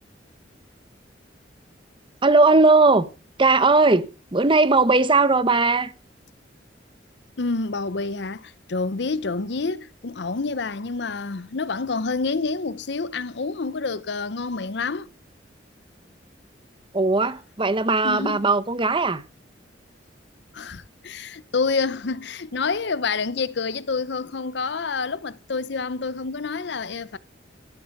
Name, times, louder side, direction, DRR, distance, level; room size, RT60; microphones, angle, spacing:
voice 1, 2.2-3.1 3.4-5.9 16.9-19.2, right 3 dB, 30° right, 1.1 m, -18 dB
voice 2, 7.4-15.1 18.0-18.5 20.5-27.2, left 4 dB, 70° left, 0.7 m, -28 dB
14.0 x 10.0 x 6.0 m
head